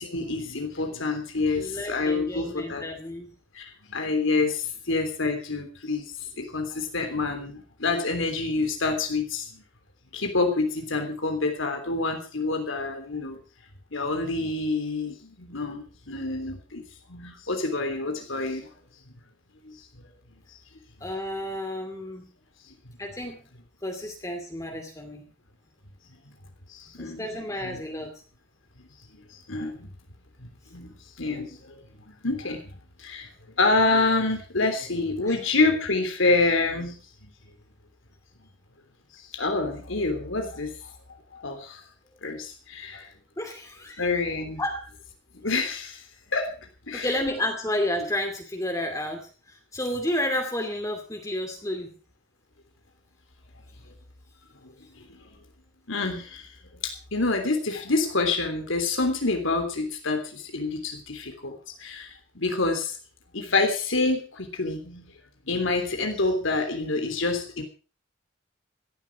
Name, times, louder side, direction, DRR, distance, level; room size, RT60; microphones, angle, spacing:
voice 1, 0.0-2.8 3.5-3.6 3.9-6.1 6.4-9.6 10.1-13.4 13.9-16.8 17.1-18.7 19.6-19.7 26.7-27.2 27.6-27.8 29.5-29.9 30.4-31.7 32.1-33.3 33.6-37.3 39.3-40.9 41.3-41.8 42.2-43.1 44.0-44.6 45.4-46.0 46.3-46.6 46.9-47.2 55.0-55.1 55.9-56.4 56.8-63.0 63.3-65.1 65.5-67.6, left 3 dB, 75° left, 4 dB, 3.3 m, -27 dB
voice 2, 1.6-3.3 21.0-22.3 23.0-23.4 23.8-25.2 27.0-28.1 35.2-35.4 43.4-44.2 44.6-44.9 46.9-51.9, left 1 dB, 15° left, 3 dB, 2.5 m, -31 dB
16.5 x 13.0 x 4.7 m, 0.37 s
head